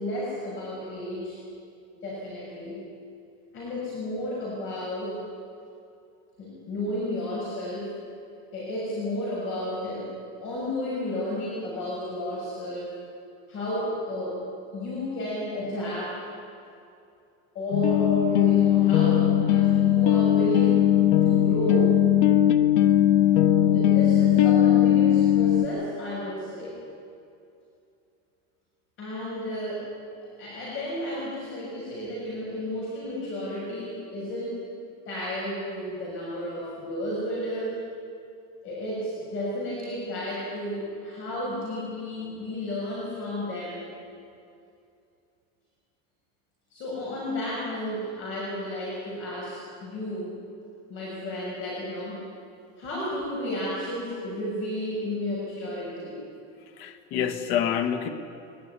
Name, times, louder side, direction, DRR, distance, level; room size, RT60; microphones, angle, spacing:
voice 1, 0.0-1.4 2.0-2.8 3.5-5.2 6.4-7.9 8.5-10.1 10.4-13.0 13.5-14.4 14.7-16.3 17.5-20.8 21.2-21.9 23.7-26.8 29.0-29.8 30.4-34.6 35.0-37.8 38.6-43.8 46.7-50.3 50.9-52.2 52.8-56.2, left 1 dB, 40° left, -5 dB, 6.8 m, -32 dB
sound 1, 17.7-25.7, left 11 dB, 90° left, 1.3 m, -19 dB
voice 2, 56.8-58.1, left 9 dB, 60° left, 6 dB, 1.9 m, -27 dB
22.0 x 21.5 x 9.8 m, 2.5 s
cardioid pair, 175°, 32 cm